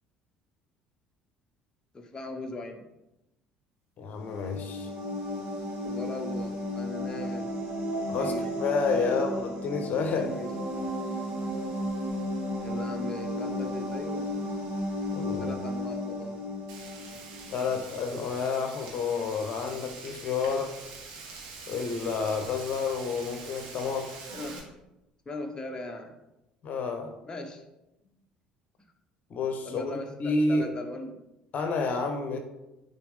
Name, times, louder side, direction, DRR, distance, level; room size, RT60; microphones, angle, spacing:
voice 1, 1.9-2.9 5.8-7.5 7.9-8.5 9.0-9.4 10.0-10.5 12.6-14.4 15.4-16.4 24.3-24.6 25.3-26.1 27.2-27.6 29.6-31.2 32.2-32.4, left 2 dB, 20° left, 3 dB, 1.0 m, -39 dB
voice 2, 4.0-4.9 8.1-10.4 15.1-15.5 17.5-20.8 21.7-24.2 26.6-27.1 29.3-30.7 31.5-32.4, left 4 dB, 45° left, 5 dB, 1.0 m, -30 dB
sound 1, 4.1-17.7, equal, 50° right, 2.8 m, -33 dB
Frying (food), 16.7-24.6, right 4 dB, 65° right, 1.6 m, -44 dB
10.0 x 4.1 x 3.6 m, 0.93 s
figure-of-eight pair, 55°, 4 cm